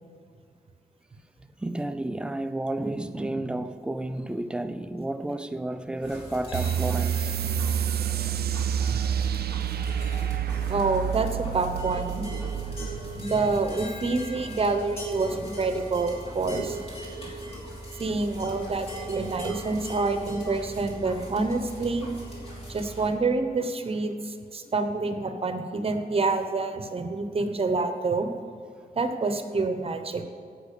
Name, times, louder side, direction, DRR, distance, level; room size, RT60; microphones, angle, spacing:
voice 1, 1.6-7.3 10.2-10.3 12.7-13.3, right 1 dB, 5° right, 0.5 m, -32 dB
sound 1, 6.0-23.1, right 1 dB, 40° left, 3.5 m, -39 dB
sound 2, 6.5-13.6, right 9 dB, 85° right, 0.5 m, -29 dB
voice 2, 10.7-12.2 13.2-16.8 18.0-22.1 22.7-28.3 29.0-30.2, right 3 dB, 35° right, 0.9 m, -27 dB
16.5 x 6.1 x 6.7 m
wide cardioid pair, 160°, 16 cm